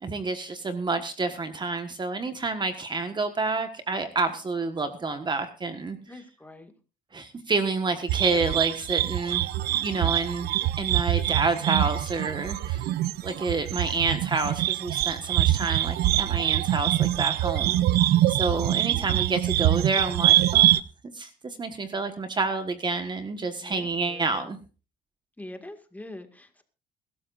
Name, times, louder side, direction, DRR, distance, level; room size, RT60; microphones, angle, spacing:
voice 1, 0.0-6.0 7.1-10.5 10.8-12.9 13.2-20.8 21.1-24.6, right 3 dB, 25° right, 8 dB, 1.4 m, -29 dB
voice 2, 6.1-6.7 18.8-19.2 23.6-24.5 25.4-26.6, left 1 dB, 10° left, 6 dB, 2.0 m, -44 dB
sound 1, 8.1-20.8, right 14 dB, 75° right, 0.6 m, -24 dB
23.0 x 12.5 x 2.6 m, 0.35 s
cardioid pair, 110°, 17 cm